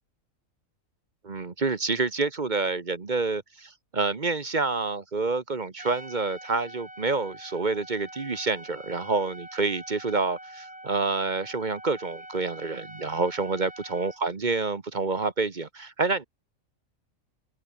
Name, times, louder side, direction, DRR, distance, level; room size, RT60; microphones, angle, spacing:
voice 1, 1.2-16.2, right 3 dB, 35° right, 1.3 m, -28 dB
Trumpet, 5.8-14.2, right 1 dB, 5° right, 1.1 m, -45 dB
open air
omnidirectional pair, 1.4 m